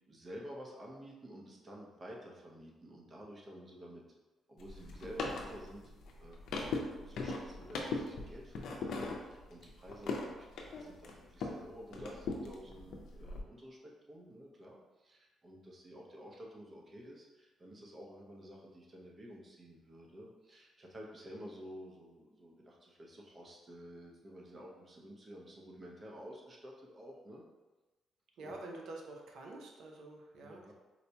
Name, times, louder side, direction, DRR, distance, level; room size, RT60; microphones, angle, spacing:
voice 1, 0.1-4.0 4.5-5.8 6.2-6.4 7.0-27.4 28.4-28.5 30.4-30.7, equal, 35° right, -1 dB, 0.7 m, -51 dB
sound 1, 4.6-11.6 11.9-13.4, left 3 dB, 75° left, 0.5 m, -40 dB
voice 2, 28.4-30.7, right 2 dB, 75° right, 1 dB, 0.6 m, -47 dB
4.1 x 2.2 x 2.8 m, 1.1 s
cardioid pair, 90°, 0 cm